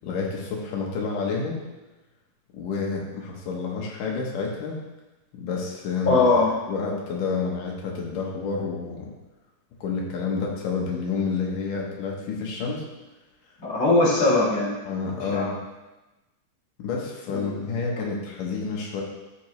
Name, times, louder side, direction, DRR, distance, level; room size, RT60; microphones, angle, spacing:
voice 1, 0.0-1.6 2.5-4.8 5.3-6.3 6.7-9.1 9.8-12.8 14.9-15.6 16.8-19.0, left 4 dB, 85° left, -2 dB, 2.8 m, -29 dB
voice 2, 6.0-6.5 13.6-14.7 15.1-15.5 17.3-17.5, left 2 dB, 25° left, -7 dB, 3.5 m, -21 dB
13.5 x 6.1 x 3.1 m, 1.1 s
omnidirectional pair, 3.7 m